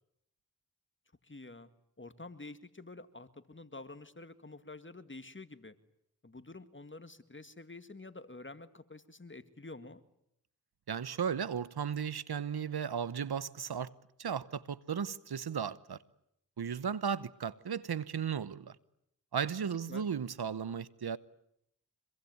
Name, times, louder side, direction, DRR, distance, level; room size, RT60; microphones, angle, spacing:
voice 1, 1.2-1.7 2.0-5.7 6.2-10.0 19.9-20.1, left 2 dB, 30° left, 1.9 m, -48 dB
voice 2, 10.9-13.9 14.2-16.0 16.6-18.8 19.3-21.2, right 7 dB, 80° right, 1.0 m, -35 dB
25.5 x 23.0 x 9.5 m
cardioid pair, 45°, 38 cm